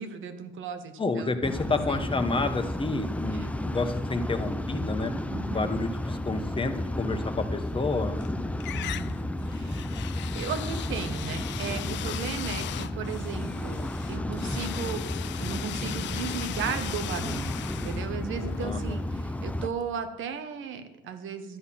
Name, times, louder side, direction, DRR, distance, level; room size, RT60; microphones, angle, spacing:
voice 1, 0.0-2.0 3.2-3.5 5.3-5.7 8.7-9.1 9.5-9.9 10.3-15.0 15.4-17.5 17.8-21.6, right 6 dB, 80° right, 8 dB, 1.4 m, -36 dB
voice 2, 1.0-5.1 5.5-8.2 18.6-19.0, left 3 dB, 25° left, 8 dB, 1.3 m, -29 dB
sound 1, 1.4-19.7, left 1 dB, 5° left, 0.6 m, -32 dB
sound 2, 7.7-8.3 8.6-19.5, left 13 dB, 65° left, 0.4 m, -39 dB
12.5 x 8.1 x 5.8 m, 1.1 s
cardioid pair, 90°, 20 cm